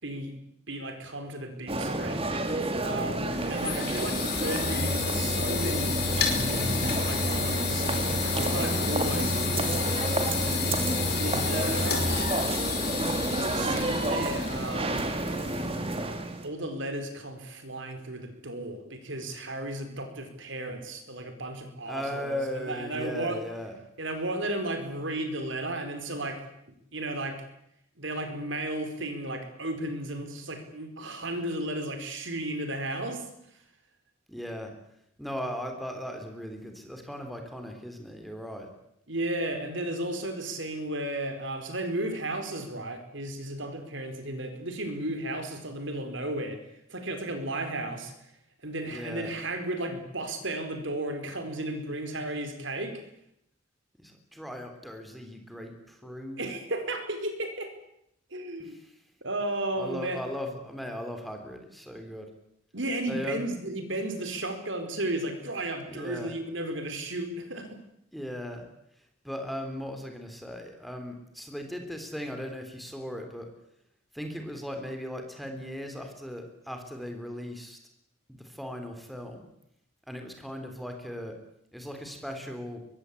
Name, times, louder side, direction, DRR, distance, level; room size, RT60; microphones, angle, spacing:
voice 1, 0.0-2.3 2.8-6.0 7.0-10.0 11.2-12.0 13.3-15.2 16.4-23.4 24.0-26.4 26.9-27.4 28.0-33.6 39.1-46.6 46.9-48.3 48.6-53.0 55.6-55.7 56.4-57.7 58.3-58.8 59.2-60.2 62.7-67.8, right 1 dB, 65° right, 7 dB, 4.5 m, -34 dB
sound 1, 1.7-16.5, right 2 dB, 30° right, 2.5 m, -30 dB
sound 2, 3.2-16.0, left 4 dB, 50° left, 5.0 m, -30 dB
voice 2, 21.9-23.8 34.3-34.7 35.2-38.7 48.9-49.3 54.0-56.5 58.6-58.9 59.8-62.3 63.1-63.5 65.9-66.3 68.1-68.7 69.2-73.5 74.1-77.8 78.3-79.5 80.1-81.4 81.7-82.8, equal, ahead, 4 dB, 3.6 m, -38 dB
23.5 x 23.0 x 8.5 m, 0.77 s
head